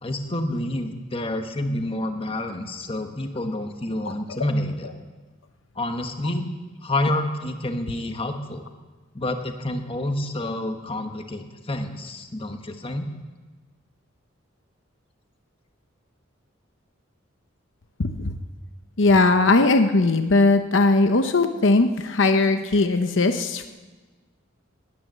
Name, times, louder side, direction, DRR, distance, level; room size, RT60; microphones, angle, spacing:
voice 1, 0.0-4.9 5.7-6.5 6.8-8.7 9.1-13.1, left 1 dB, 30° left, 6 dB, 1.3 m, -28 dB
voice 2, 18.0-18.3 19.0-23.7, left 3 dB, 65° left, 8 dB, 0.8 m, -19 dB
19.5 x 9.6 x 7.5 m, 1.3 s
head